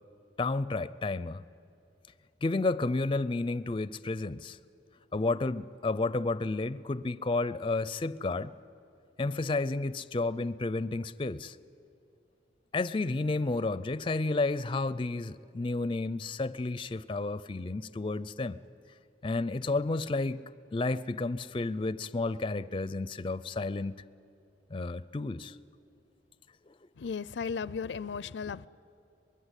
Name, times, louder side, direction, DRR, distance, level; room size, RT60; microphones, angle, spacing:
voice 1, 0.4-1.4 2.4-4.6 5.1-8.5 9.2-11.6 12.7-18.5 19.2-20.4 20.7-23.9 24.7-25.6, left 3 dB, 30° left, 0.5 m, -31 dB
voice 2, 27.0-28.7, left 5 dB, 85° left, 0.5 m, -35 dB
23.5 x 21.0 x 8.2 m
head